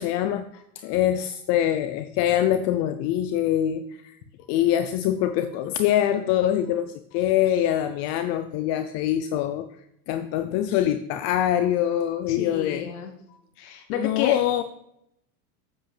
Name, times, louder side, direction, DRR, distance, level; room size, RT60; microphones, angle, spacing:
voice 1, 0.0-4.2 4.5-9.7 10.1-12.9 13.9-14.6, left 11 dB, 35° left, 10 dB, 0.4 m, -24 dB
voice 2, 12.3-13.1 13.6-14.4, left 8 dB, 75° left, 4 dB, 1.2 m, -31 dB
7.9 x 7.9 x 3.3 m, 0.77 s
supercardioid pair, 120°, 45 cm